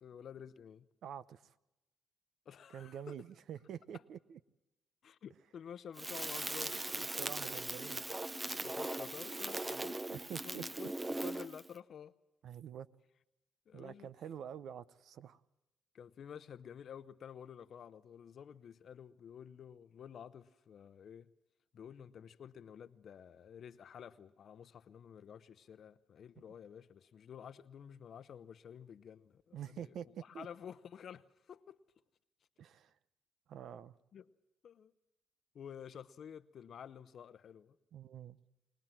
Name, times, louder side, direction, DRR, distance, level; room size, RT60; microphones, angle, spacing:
voice 1, 0.0-0.9 2.5-3.1 5.0-6.8 8.6-12.1 13.7-14.1 15.9-21.3 21.7-31.8 34.1-34.3 34.6-34.9 35.5-37.8, left 8 dB, 60° left, 0.8 m, -51 dB
voice 2, 1.0-1.5 2.7-4.4 6.9-8.0 10.1-10.9 12.4-12.9 13.7-15.4 29.5-30.5 32.6-32.9 33.5-33.9 37.9-38.4, right 9 dB, 70° right, 0.8 m, -47 dB
Crackle, 6.0-11.7, right 2 dB, 15° right, 0.8 m, -39 dB
23.0 x 19.0 x 7.5 m
cardioid pair, 90°, 0 cm